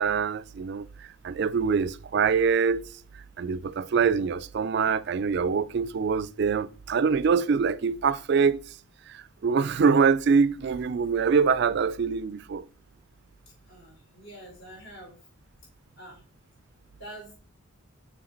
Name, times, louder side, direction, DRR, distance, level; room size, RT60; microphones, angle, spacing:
voice 1, 0.0-2.8 3.1-8.8 9.1-12.6, right 5 dB, 50° right, 0.3 m, -24 dB
voice 2, 13.7-15.2 16.0-16.2 16.9-17.4, right 1 dB, 60° left, 3.8 m, -45 dB
6.3 x 4.5 x 4.3 m
head